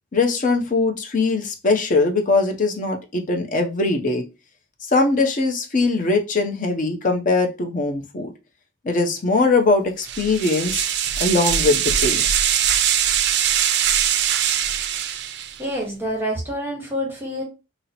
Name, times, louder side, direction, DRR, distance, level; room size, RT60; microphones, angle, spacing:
voice 1, 0.1-4.2 4.9-8.3 8.8-10.8 11.2-12.3, left 3 dB, 45° left, 4 dB, 0.6 m, -21 dB
sound 1, 10.1-15.6, right 9 dB, 60° right, 0.3 m, -21 dB
voice 2, 15.6-17.4, equal, 10° right, -2 dB, 0.9 m, -27 dB
2.8 x 2.0 x 3.9 m, 0.28 s
head